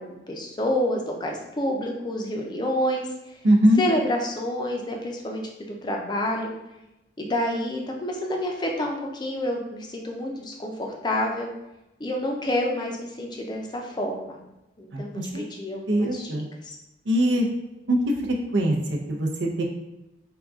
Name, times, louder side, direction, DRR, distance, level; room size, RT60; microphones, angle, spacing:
voice 1, 0.0-3.1 3.8-6.5 7.2-11.5 12.0-14.4 14.8-16.8, left 1 dB, 25° left, 1 dB, 0.5 m, -28 dB
voice 2, 3.4-3.8 14.9-15.4 15.9-16.4 17.1-17.5 17.9-18.0 18.5-19.6, equal, 75° right, 0 dB, 0.6 m, -22 dB
3.8 x 2.3 x 3.5 m, 0.94 s
head